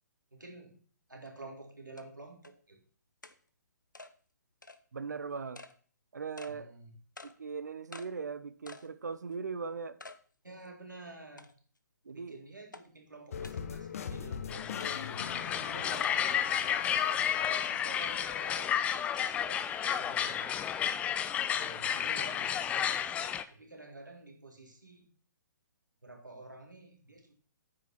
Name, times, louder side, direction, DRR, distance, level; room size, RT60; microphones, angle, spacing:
voice 1, 0.3-0.8 1.1-2.8 6.5-6.9 10.4-11.5 12.1-15.2 15.6-16.4 17.4-20.7 21.5-22.7 23.5-25.1 26.0-27.3, right 2 dB, 80° right, 2 dB, 3.8 m, -50 dB
sound 1, 1.3-1.4 2.0-2.1 2.4-2.5 3.2-3.4 3.9-4.1 4.6-4.8 5.5-5.7 6.4-6.5 7.2-7.3 7.9-8.1 8.7-8.9 9.3-9.4 10.0-10.2 10.6-10.7 11.4-11.8 12.7-12.8 13.4-13.6 14.8-15.0 16.0-16.1, left 3 dB, 80° left, 1.3 m, -49 dB
voice 2, 4.9-5.6 6.1-6.7 7.2-10.0 12.0-12.4 14.2-14.3, right 5 dB, 65° right, 13 dB, 1.2 m, -39 dB
sound 2, 13.3-19.0, left 7 dB, 50° left, 1.2 m, -41 dB
sound 3, 14.5-23.4, left 9 dB, 15° left, 0.6 m, -32 dB
9.6 x 9.5 x 6.0 m, 0.43 s
figure-of-eight pair, 125°, 10 cm